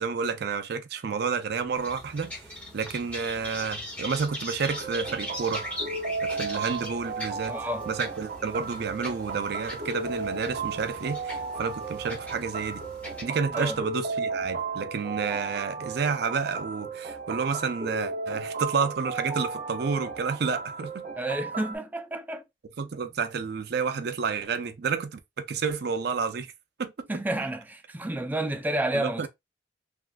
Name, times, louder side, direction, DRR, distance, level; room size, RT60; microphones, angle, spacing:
voice 1, 0.0-2.3 2.7-5.7 6.2-7.6 7.9-12.8 13.2-21.1 22.8-26.5 26.8-27.1 28.9-29.3, right 5 dB, 65° right, 0.5 m, -30 dB
sound 1, 1.7-13.2, left 1 dB, 10° left, 1.0 m, -40 dB
sound 2, 4.7-21.8, right 4 dB, 50° right, 0.9 m, -35 dB
voice 2, 7.5-7.9 13.5-13.8 21.2-22.4 27.1-29.3, right 1 dB, 10° right, 0.4 m, -30 dB
3.5 x 2.5 x 2.2 m
head